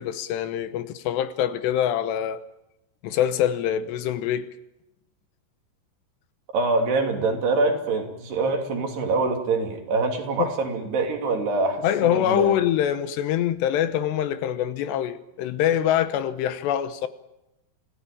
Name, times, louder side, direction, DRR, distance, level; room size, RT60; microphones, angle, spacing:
voice 1, 0.0-2.4 3.0-4.5 10.4-10.5 11.8-17.1, left 10 dB, 80° left, 3.1 m, -24 dB
voice 2, 6.5-12.5, right 3 dB, 70° right, 5.0 m, -25 dB
26.5 x 17.0 x 8.8 m
omnidirectional pair, 5.0 m